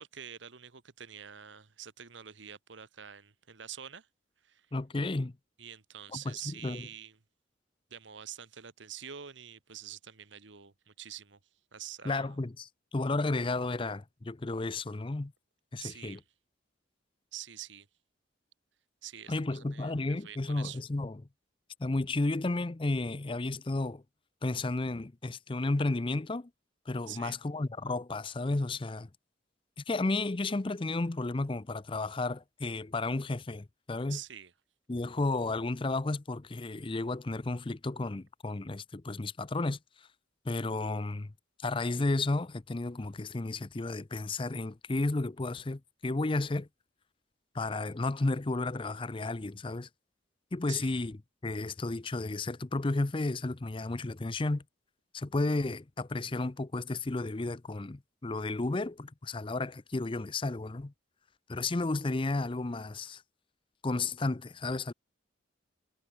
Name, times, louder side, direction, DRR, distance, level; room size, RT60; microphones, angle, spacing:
voice 1, 0.0-4.1 4.4-4.7 5.6-7.2 7.9-11.4 11.7-12.4 15.8-16.2 17.3-17.9 19.0-20.8 27.1-27.4 34.1-34.5 50.7-50.9, right 9 dB, 75° right, 1.3 m, -46 dB
voice 2, 4.7-5.3 6.1-6.8 12.0-15.3 15.7-16.2 19.3-21.2 21.8-24.0 24.4-26.5 26.9-29.1 29.8-34.2 34.9-39.8 40.5-41.3 41.6-46.7 47.5-49.9 50.5-51.2 51.4-54.6 55.1-60.9 61.5-63.2 63.8-64.9, left 2 dB, 25° left, 0.6 m, -32 dB
head